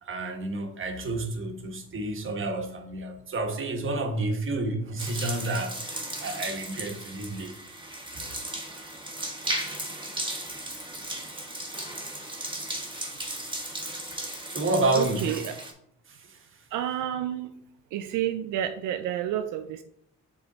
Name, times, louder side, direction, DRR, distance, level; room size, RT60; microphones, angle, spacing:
voice 1, 0.0-5.8 6.2-7.5 8.1-8.2 14.5-15.3 16.1-16.4, right 2 dB, 40° right, 4 dB, 1.3 m, -30 dB
sound 1, 5.0-15.7, right 1 dB, 15° right, 1.4 m, -36 dB
voice 2, 15.0-15.6 16.7-17.6 17.9-19.8, right 11 dB, 85° right, 8 dB, 0.5 m, -30 dB
7.2 x 3.6 x 3.9 m, 0.71 s
cardioid pair, 90°, 30 cm